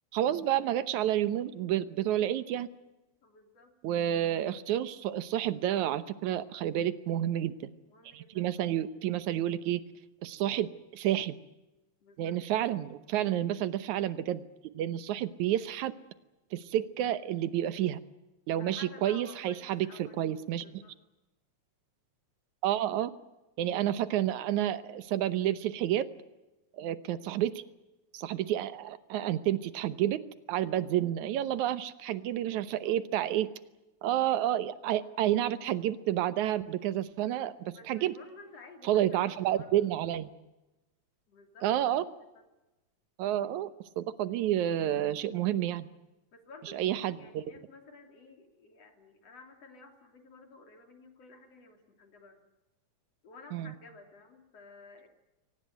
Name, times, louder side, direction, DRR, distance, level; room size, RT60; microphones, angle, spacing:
voice 1, 0.1-2.7 3.8-7.5 8.1-9.8 10.2-11.4 12.2-14.4 14.7-16.0 16.5-18.0 18.5-20.7 22.6-23.1 23.6-26.1 26.8-27.6 28.1-30.2 30.5-33.5 34.0-38.1 38.8-40.3 41.6-42.0 43.2-43.7 44.0-45.9 46.7-47.4 53.5-53.7, right 12 dB, 80° right, 14 dB, 2.4 m, -30 dB
voice 2, 3.2-3.7 7.9-8.8 12.0-12.4 18.6-20.3 20.6-20.9 37.7-39.7 41.3-41.7 42.4-42.5 46.3-52.4 53.2-55.1, left 3 dB, 60° left, 5 dB, 3.9 m, -53 dB
23.5 x 18.5 x 9.4 m, 1.0 s
omnidirectional pair, 3.4 m